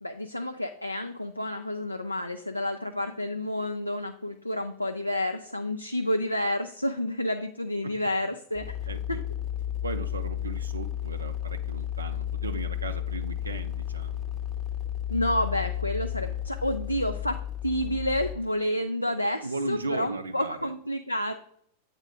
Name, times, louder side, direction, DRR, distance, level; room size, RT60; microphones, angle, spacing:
voice 1, 0.0-8.8 15.1-17.4 17.6-21.4, left 1 dB, 85° left, 7 dB, 0.3 m, -29 dB
sound 1, 8.5-18.3, left 11 dB, 15° left, 0.7 m, -33 dB
voice 2, 8.9-9.2 9.8-14.2 19.4-20.7, right 3 dB, 75° right, 7 dB, 0.4 m, -36 dB
8.0 x 3.6 x 3.4 m, 0.69 s
figure-of-eight pair, 90°, 0 cm